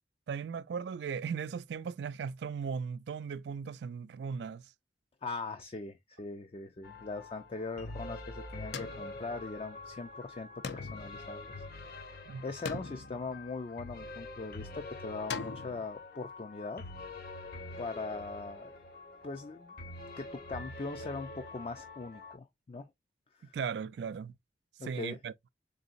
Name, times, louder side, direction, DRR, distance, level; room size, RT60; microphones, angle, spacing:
voice 1, 0.3-4.6 12.3-12.4 23.5-24.3 24.8-25.3, right 6 dB, 70° right, 0.3 m, -37 dB
voice 2, 5.2-16.8 17.8-18.8 19.2-19.7 20.2-22.9 23.3-23.6 24.8-25.2, left 3 dB, 30° left, 0.4 m, -41 dB
sound 1, 6.8-22.3, left 2 dB, 55° left, 1.2 m, -46 dB
sound 2, 8.7-9.9 10.6-12.1 12.7-14.0 15.3-15.9, left 5 dB, 75° left, 0.6 m, -42 dB
4.0 x 3.7 x 2.5 m
head